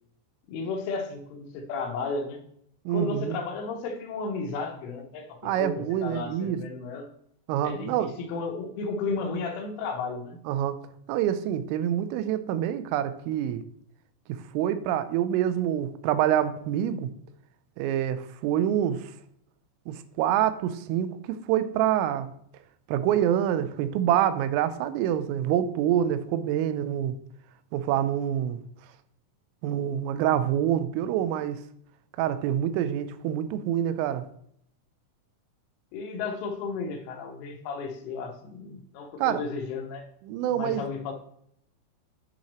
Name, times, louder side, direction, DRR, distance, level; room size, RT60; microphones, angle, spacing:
voice 1, 0.5-2.4 2.9-7.1 7.6-10.4 35.9-40.1 40.5-41.1, left 4 dB, 80° left, 4 dB, 3.5 m, -33 dB
voice 2, 2.9-3.4 5.4-6.6 7.5-8.1 10.5-10.8 11.1-13.6 14.5-17.1 17.8-19.1 19.9-22.3 22.9-27.2 27.7-28.6 29.6-31.6 32.2-34.2 39.2-39.4 40.3-40.8, right 10 dB, 85° right, 12 dB, 3.2 m, -26 dB
10.0 x 5.6 x 3.0 m, 0.69 s
omnidirectional pair, 5.7 m